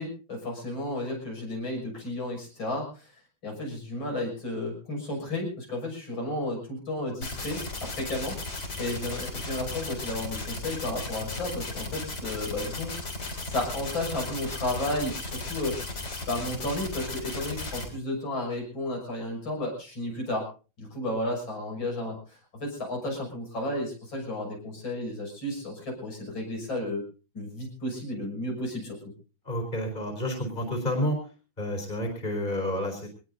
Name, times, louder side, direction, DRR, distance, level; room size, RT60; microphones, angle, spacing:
voice 1, 0.0-3.1 3.4-12.9 13.4-15.8 16.3-20.5 20.8-27.0 27.3-29.0, left 1 dB, 80° left, 0 dB, 7.2 m, -33 dB
sound 1, 7.2-17.9, left 3 dB, 55° left, 4.5 m, -35 dB
voice 2, 29.5-31.2 31.6-33.1, left 1 dB, 20° left, 4 dB, 4.3 m, -30 dB
23.5 x 19.5 x 2.7 m, 0.35 s
omnidirectional pair, 2.1 m